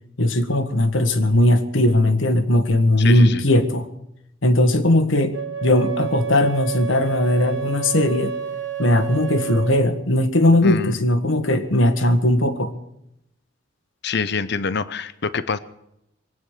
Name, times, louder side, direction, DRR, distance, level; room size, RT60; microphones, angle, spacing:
voice 1, 0.2-3.9 4.4-5.3 5.6-8.3 8.8-12.7, left 1 dB, 75° left, 9 dB, 1.5 m, -18 dB
voice 2, 3.0-3.4 10.6-11.1 14.0-15.6, left 5 dB, 60° left, 15 dB, 0.8 m, -26 dB
Wind instrument woodwind instrument, 5.3-9.8, right 7 dB, 65° right, 1.5 m, -29 dB
23.0 x 9.2 x 6.7 m, 0.81 s
head